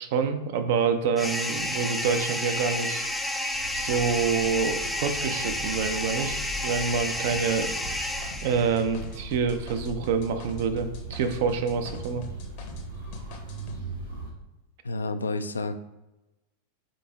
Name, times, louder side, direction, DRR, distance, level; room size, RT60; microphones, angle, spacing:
voice 1, 0.0-3.1 3.8-7.7 8.4-12.3, right 6 dB, 50° right, 8 dB, 0.5 m, -27 dB
sound 1, 1.2-8.9, left 1 dB, 5° left, 0.4 m, -31 dB
sound 2, 3.5-14.3, right 2 dB, 75° right, 1.5 m, -40 dB
sound 3, 7.3-12.9 13.1-13.8, left 4 dB, 45° left, 0.7 m, -44 dB
voice 2, 14.8-15.8, left 3 dB, 75° left, 10 dB, 0.3 m, -30 dB
5.1 x 4.1 x 2.3 m, 1.0 s
figure-of-eight pair, 90°, 0 cm